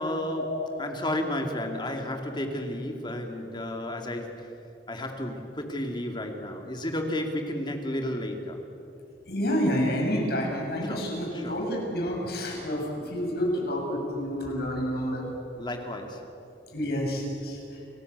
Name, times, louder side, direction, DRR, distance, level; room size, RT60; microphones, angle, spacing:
voice 1, 0.0-4.6 4.9-8.6 10.8-11.7 15.6-16.4, left 1 dB, 25° left, 3 dB, 2.6 m, -32 dB
voice 2, 9.3-15.3 16.7-17.6, equal, 60° left, 0 dB, 6.9 m, -29 dB
30.0 x 19.5 x 8.2 m, 2.8 s
head